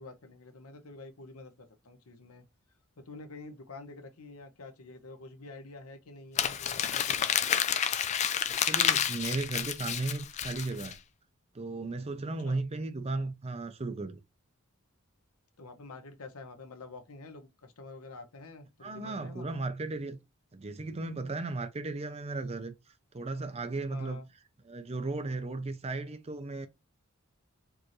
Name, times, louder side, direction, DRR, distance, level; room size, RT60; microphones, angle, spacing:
voice 1, 0.0-2.4 3.1-7.4 12.4-12.6 15.6-19.5 23.9-24.3, left 3 dB, 85° left, 0.8 m, -48 dB
Crumpling crinkling, 6.4-10.9, left 9 dB, 30° left, 0.3 m, -29 dB
voice 2, 8.5-11.0 11.5-14.2 18.8-20.2 20.5-22.7 23.1-24.2 24.6-26.7, right 3 dB, 30° right, 0.5 m, -35 dB
4.6 x 2.6 x 3.0 m
head